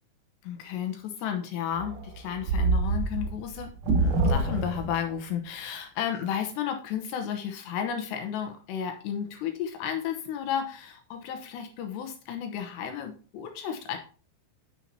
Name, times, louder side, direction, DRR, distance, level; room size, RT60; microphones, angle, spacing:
voice 1, 0.4-14.0, left 8 dB, 80° left, 5 dB, 2.7 m, -33 dB
sound 1, 1.7-5.2, right 3 dB, 70° right, 2.0 m, -26 dB
8.8 x 7.2 x 2.8 m, 0.38 s
omnidirectional pair, 5.6 m